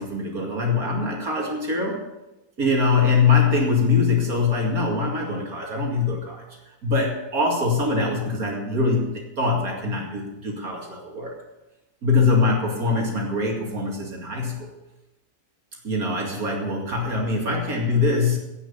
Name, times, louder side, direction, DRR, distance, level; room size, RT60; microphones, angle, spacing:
voice 1, 0.0-2.0 2.6-6.4 6.8-11.3 12.0-14.7 15.8-18.4, left 4 dB, 75° right, -1 dB, 2.8 m, -23 dB
16.5 x 6.1 x 6.9 m, 0.99 s
omnidirectional pair, 1.6 m